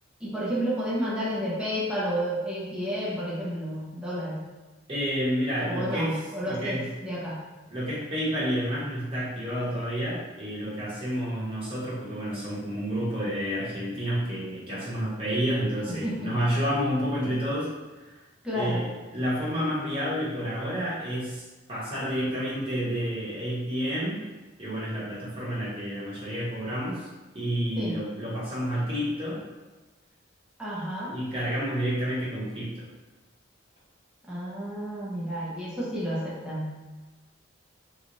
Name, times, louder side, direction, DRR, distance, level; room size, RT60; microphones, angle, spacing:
voice 1, 0.2-4.4 5.6-7.4 15.8-16.3 18.4-18.8 27.8-28.0 30.6-31.2 34.3-36.7, equal, 5° right, -8 dB, 0.6 m, -31 dB
voice 2, 4.9-6.9 7.7-17.7 17.9-18.1 18.5-24.2 24.6-27.1 27.3-29.4 31.1-32.8, equal, 25° right, -8 dB, 1.1 m, -30 dB
3.0 x 2.4 x 3.8 m, 1.2 s
head